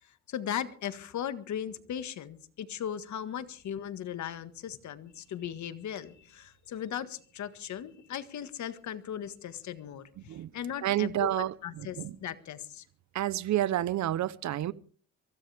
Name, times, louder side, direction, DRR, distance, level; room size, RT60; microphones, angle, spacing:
voice 1, 0.3-12.9, left 9 dB, 70° left, 1.7 m, -38 dB
voice 2, 10.2-10.5 10.8-12.2 13.1-14.7, right 13 dB, 70° right, 0.9 m, -30 dB
23.5 x 16.0 x 3.5 m
cardioid pair, 90°, 30 cm